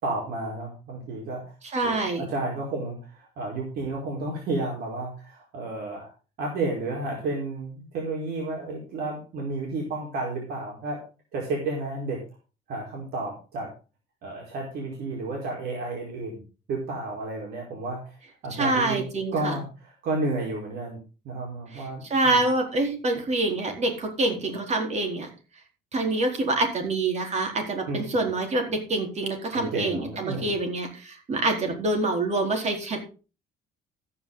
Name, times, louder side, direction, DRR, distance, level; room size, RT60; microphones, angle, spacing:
voice 1, 0.0-1.5 1.8-6.1 6.4-11.0 11.3-12.2 12.7-13.7 14.2-16.4 16.7-18.2 18.4-19.0 19.3-21.0 21.2-22.4 27.9-28.3 29.5-30.5, right 2 dB, 70° right, -1 dB, 4.5 m, -32 dB
voice 2, 1.7-2.3 18.6-19.6 21.7-21.8 22.1-25.3 25.9-33.0, right 2 dB, 40° right, 4 dB, 4.2 m, -26 dB
13.5 x 9.9 x 3.9 m, 0.34 s
cardioid pair, 110°, 17 cm